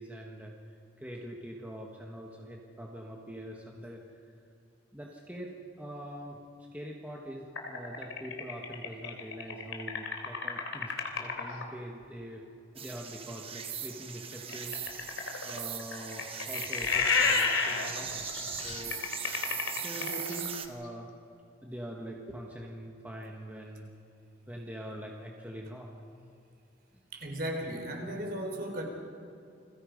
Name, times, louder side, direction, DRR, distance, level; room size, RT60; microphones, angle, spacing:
voice 1, 0.0-4.0 4.9-6.4 6.7-14.7 15.4-19.0 19.7-21.1 21.6-23.9 24.5-25.9 28.6-28.8, right 1 dB, 10° right, -1 dB, 1.7 m, -43 dB
sound 1, 7.5-11.6 14.5-20.5, left 5 dB, 80° left, 3.2 m, -31 dB
sound 2, 12.8-20.7, right 7 dB, 30° right, 1.3 m, -40 dB
voice 2, 27.1-28.8, right 1 dB, 50° right, 1 dB, 4.3 m, -35 dB
29.0 x 22.0 x 5.4 m, 2.5 s
head